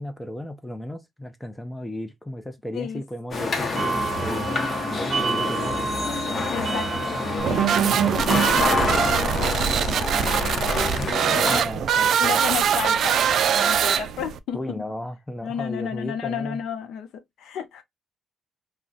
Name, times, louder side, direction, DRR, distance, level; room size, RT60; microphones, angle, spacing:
voice 1, 0.0-5.8 11.4-12.4 14.5-16.6, left 1 dB, 5° left, 0.5 m, -34 dB
sound 1, 3.3-11.6, left 3 dB, 40° left, 0.8 m, -27 dB
sound 2, 3.8-9.4, right 4 dB, 50° right, 0.7 m, -29 dB
voice 2, 6.5-10.7 12.2-14.8 15.4-17.8, left 8 dB, 80° left, 0.6 m, -33 dB
sound 3, 7.4-14.4, right 8 dB, 65° right, 0.3 m, -22 dB
2.5 x 2.1 x 3.5 m
cardioid pair, 90°, 0 cm